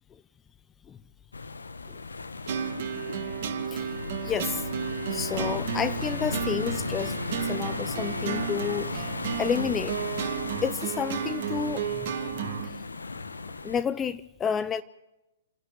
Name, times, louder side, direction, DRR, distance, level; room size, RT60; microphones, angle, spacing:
sound 1, 1.3-13.8, left 3 dB, 85° left, 1.2 m, -35 dB
sound 2, 2.5-12.7, right 9 dB, 50° right, 2.0 m, -33 dB
voice 1, 4.2-4.7 5.1-7.2 7.4-9.1 9.4-10.0 10.6-12.1 12.6-12.8 13.6-14.8, left 7 dB, 20° left, 0.6 m, -30 dB
28.0 x 11.0 x 9.1 m
figure-of-eight pair, 120°, 0 cm